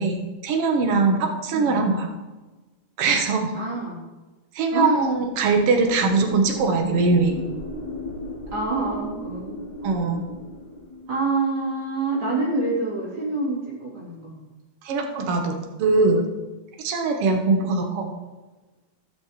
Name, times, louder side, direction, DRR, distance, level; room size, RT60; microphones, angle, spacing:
voice 1, 0.0-2.1 3.0-3.6 4.6-7.4 9.8-10.3 14.8-16.3 16.8-18.1, right 4 dB, 60° right, 3 dB, 1.9 m, -21 dB
voice 2, 3.5-4.0 4.7-4.9 8.5-9.6 11.1-14.4, right 2 dB, 45° right, -6 dB, 3.9 m, -26 dB
sound 1, 5.0-11.1, left 2 dB, 45° left, 1.5 m, -37 dB
17.0 x 6.2 x 3.1 m, 1.2 s
omnidirectional pair, 3.3 m